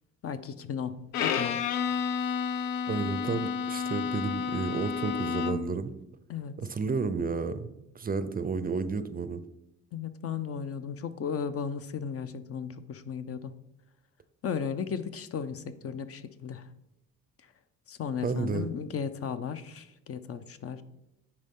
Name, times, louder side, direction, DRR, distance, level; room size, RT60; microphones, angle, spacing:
voice 1, 0.2-1.6 6.3-6.5 9.9-13.5 14.4-16.6 17.9-20.8, left 7 dB, 50° left, 11 dB, 0.6 m, -35 dB
Bowed string instrument, 1.1-5.8, left 7 dB, 90° left, 0.6 m, -31 dB
voice 2, 2.9-5.9 6.6-7.7 7.9-9.4 18.2-18.7, right 5 dB, 30° right, 12 dB, 0.5 m, -31 dB
9.5 x 4.4 x 3.7 m, 0.88 s
cardioid pair, 90°, 30 cm